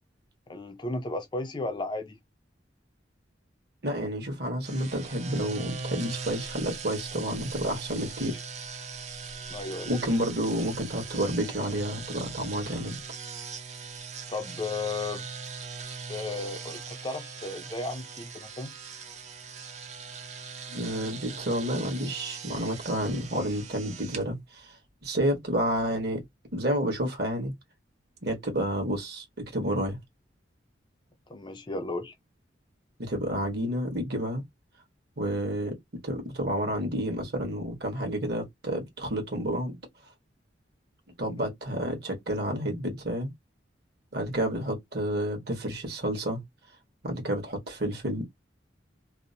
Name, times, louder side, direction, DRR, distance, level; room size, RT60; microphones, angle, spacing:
voice 1, 0.5-2.2 9.5-9.9 14.3-15.3 16.1-18.7 31.3-32.1, left 3 dB, 25° left, 0.4 m, -34 dB
voice 2, 3.8-8.4 9.8-13.0 20.7-24.7 25.0-26.2 26.5-27.5 28.2-30.0 33.0-34.4 35.2-35.8 36.0-39.8 41.2-43.3 44.1-46.5 47.0-48.3, right 1 dB, 55° right, 1.2 m, -30 dB
sound 1, 4.6-24.2, right 5 dB, 35° right, 0.5 m, -40 dB
2.7 x 2.0 x 2.6 m
head